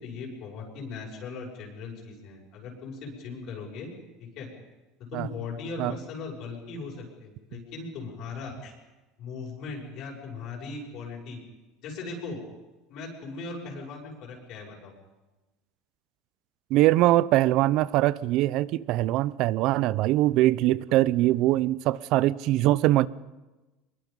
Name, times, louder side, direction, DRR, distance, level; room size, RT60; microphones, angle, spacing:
voice 1, 0.0-3.9 4.2-4.5 5.1-8.7 9.2-11.4 11.8-12.4 12.9-14.9, left 4 dB, 55° left, 6.5 m, -38 dB
voice 2, 16.7-23.1, right 16 dB, 60° right, 0.6 m, -22 dB
24.0 x 22.5 x 5.4 m
supercardioid pair, 125°, 0 cm